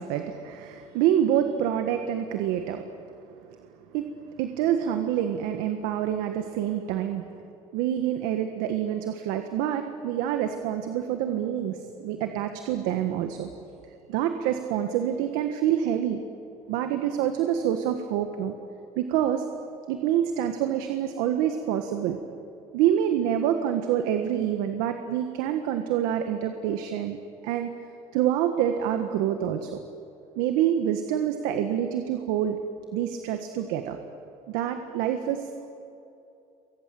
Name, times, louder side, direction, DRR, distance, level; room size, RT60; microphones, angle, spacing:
voice 1, 0.0-2.9 3.9-4.1 4.4-7.2 7.7-13.5 14.1-16.2 16.7-18.5 19.0-19.4 19.9-22.2 22.7-27.2 27.4-27.7 28.1-29.8 30.4-32.6 32.9-34.0 34.5-35.5, right 10 dB, 85° right, 6 dB, 1.6 m, -26 dB
28.5 x 23.5 x 7.8 m, 2.8 s
supercardioid pair, 95°, 14 cm